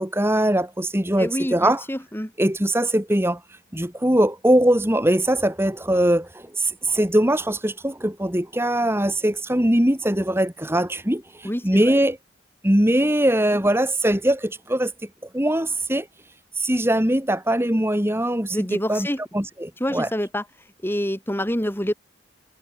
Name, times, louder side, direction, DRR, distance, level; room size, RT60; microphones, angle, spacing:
voice 1, 0.0-1.8 2.4-12.2 12.6-15.1 15.3-16.1 16.5-19.1 19.3-20.1, right 1 dB, 10° right, 2.6 m, -21 dB
voice 2, 1.2-2.3 11.4-12.0 18.5-19.2 19.8-20.4 20.8-21.9, equal, 10° left, 5.9 m, -27 dB
head